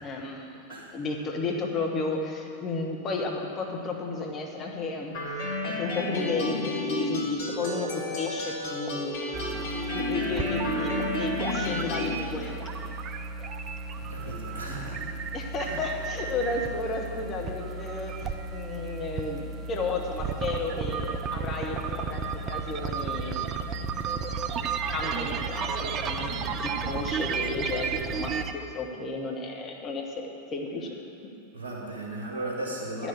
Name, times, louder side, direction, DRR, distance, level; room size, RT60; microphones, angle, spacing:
voice 1, 0.0-12.6 14.2-14.3 15.3-22.2 22.5-23.4 24.9-30.9 33.0-33.1, left 3 dB, 30° left, 1 dB, 1.3 m, -33 dB
sound 1, 5.1-12.1, left 2 dB, 50° left, 1.8 m, -31 dB
sound 2, 9.3-28.5, right 5 dB, 30° right, 0.6 m, -33 dB
voice 2, 14.0-15.1 15.6-15.7 31.5-33.1, right 2 dB, 70° right, -4 dB, 2.5 m, -36 dB
11.0 x 6.2 x 7.3 m, 2.6 s
figure-of-eight pair, 90°, 0 cm